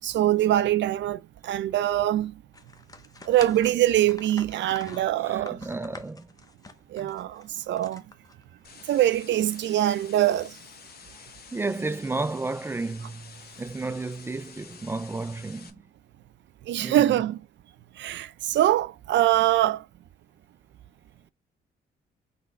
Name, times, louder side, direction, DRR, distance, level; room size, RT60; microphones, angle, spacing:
voice 1, 0.0-2.4 3.2-5.6 6.9-8.0 8.9-10.6 16.7-17.4 18.0-19.9, right 13 dB, 65° right, 0.5 m, -23 dB
sound 1, 2.5-8.7, left 3 dB, 20° left, 0.7 m, -46 dB
voice 2, 5.2-6.3 7.0-7.1 11.5-15.8 16.8-17.1, right 3 dB, 10° right, 0.3 m, -32 dB
sound 2, 8.6-15.7, left 5 dB, 50° left, 1.0 m, -49 dB
3.9 x 3.1 x 4.4 m
cardioid pair, 90°, 20 cm